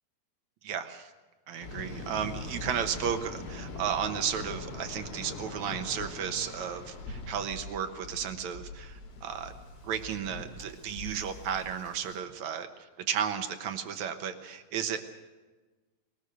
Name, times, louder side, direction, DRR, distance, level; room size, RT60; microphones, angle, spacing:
voice 1, 0.6-1.1 1.5-9.5 9.8-15.0, right 8 dB, 65° right, 8 dB, 1.9 m, -34 dB
Waves surf, 1.6-12.2, left 2 dB, 75° left, 5.2 m, -42 dB
21.5 x 20.5 x 6.5 m, 1.2 s
omnidirectional pair, 4.7 m